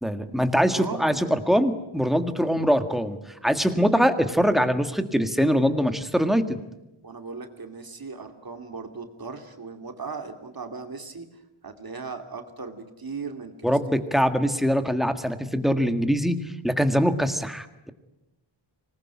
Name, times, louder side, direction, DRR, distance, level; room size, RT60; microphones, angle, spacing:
voice 1, 0.0-3.2 3.4-6.6 13.6-16.4 16.6-17.9, equal, ahead, 8 dB, 1.7 m, -23 dB
voice 2, 0.5-1.4 2.3-2.5 7.0-11.3 11.6-14.0, right 4 dB, 45° right, 6 dB, 2.6 m, -38 dB
25.0 x 20.0 x 9.8 m, 0.94 s
wide cardioid pair, 120°, 49 cm